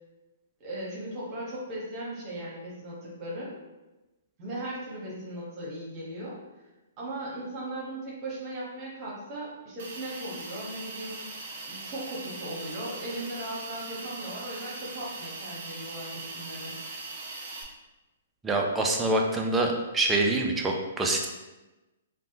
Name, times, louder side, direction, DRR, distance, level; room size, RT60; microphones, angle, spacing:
voice 1, 0.6-3.5 4.4-6.4 7.0-11.2 11.7-16.7, right 1 dB, 35° right, -6 dB, 1.0 m, -37 dB
Hiss, 9.8-17.6, right 3 dB, 55° right, 0.6 m, -40 dB
voice 2, 18.4-21.3, right 2 dB, 10° right, 1 dB, 0.4 m, -25 dB
3.3 x 2.2 x 2.7 m, 1.1 s
hypercardioid pair, 130°, 0 cm